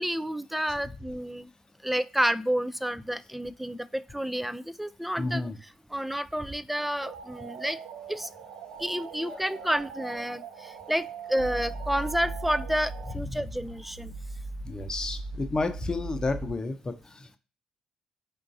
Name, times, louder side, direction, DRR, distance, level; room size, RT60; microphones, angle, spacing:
voice 1, 0.0-1.5 1.8-5.5 5.9-7.8 8.1-8.3 8.8-10.4 10.9-11.0 11.3-14.1, equal, 5° right, 15 dB, 0.4 m, -30 dB
voice 2, 5.2-5.6 9.3-9.4 13.3-13.4 14.6-17.4, left 3 dB, 25° left, 9 dB, 0.7 m, -31 dB
sound 1, 7.0-13.1, right 8 dB, 70° right, 0.5 m, -42 dB
sound 2, 11.4-16.6, right 2 dB, 65° left, 0.7 m, -38 dB
4.5 x 2.5 x 2.6 m, 0.35 s
figure-of-eight pair, 45°, 3 cm